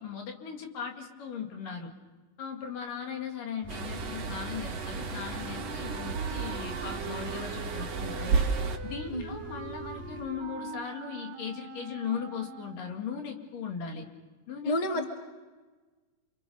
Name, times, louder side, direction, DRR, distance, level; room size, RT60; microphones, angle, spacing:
voice 1, 0.0-1.9 2.4-8.5 8.9-14.1 14.5-15.1, left 7 dB, 70° left, 3 dB, 3.8 m, -38 dB
sound 1, 3.6-10.2, left 1 dB, 85° left, 7.5 m, -45 dB
sound 2, 3.7-8.8, right 5 dB, 50° right, 2.6 m, -33 dB
Wind instrument woodwind instrument, 5.2-13.0, right 7 dB, 70° right, 2.9 m, -43 dB
voice 2, 14.7-15.2, left 1 dB, 15° left, 2 dB, 1.8 m, -29 dB
28.5 x 28.5 x 5.4 m, 1.3 s
omnidirectional pair, 4.1 m